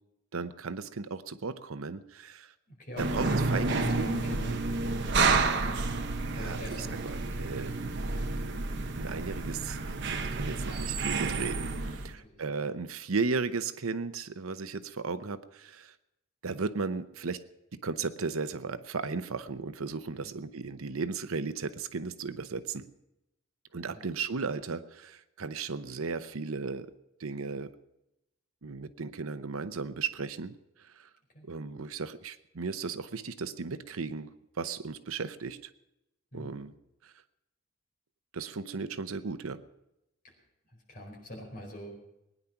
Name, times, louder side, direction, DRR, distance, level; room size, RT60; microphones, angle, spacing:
voice 1, 0.3-2.5 3.1-4.1 6.3-8.0 8.9-15.9 16.4-17.4 17.8-22.9 23.7-26.9 27.2-27.7 28.6-30.5 31.5-34.3 34.6-35.6 36.3-36.7 38.3-39.6, right 4 dB, 80° right, 12 dB, 0.8 m, -35 dB
voice 2, 2.7-4.6 6.3-7.5 10.0-10.1 10.3-10.8 11.9-12.7 20.1-20.3 23.9-24.0 31.3-31.5 36.3-36.5 40.2-40.3 40.7-42.0, equal, 40° left, 0 dB, 4.8 m, -43 dB
sound 1, 3.0-12.1, right 3 dB, 55° right, 1.0 m, -30 dB
20.5 x 10.0 x 5.8 m, 0.89 s
head